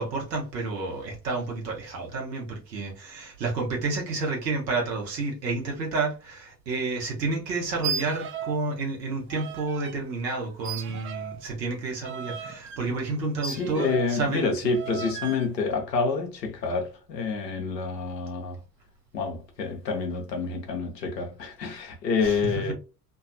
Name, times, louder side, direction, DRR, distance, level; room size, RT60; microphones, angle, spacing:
voice 1, 0.0-14.5 22.2-22.4, right 3 dB, 85° right, 1.0 m, -30 dB
sound 1, 7.7-8.6 8.9-10.0 10.6-14.2 14.7-15.5, right 7 dB, 25° right, 0.4 m, -36 dB
voice 2, 13.4-18.6 19.1-22.7, left 4 dB, 90° left, 0.7 m, -28 dB
2.7 x 2.3 x 2.6 m
figure-of-eight pair, 55°, 48 cm